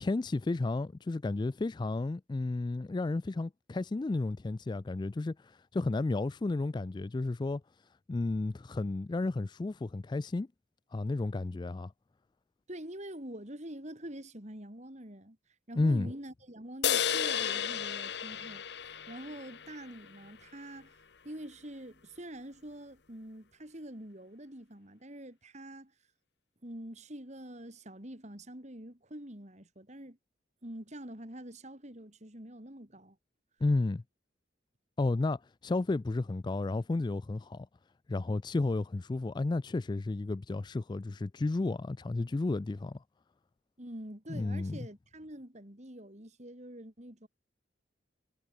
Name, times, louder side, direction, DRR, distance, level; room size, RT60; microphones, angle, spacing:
voice 1, 0.0-7.6 8.1-10.5 10.9-11.9 15.8-16.1 33.6-34.0 35.0-37.7 38.1-43.0 44.3-44.8, left 2 dB, 25° left, 0.3 m, -32 dB
voice 2, 12.7-15.4 15.7-20.9 21.2-25.9 26.6-30.2 30.6-33.2 43.8-47.3, right 1 dB, 40° right, 4.1 m, -46 dB
sound 1, 16.8-20.3, left 8 dB, 60° left, 1.1 m, -33 dB
head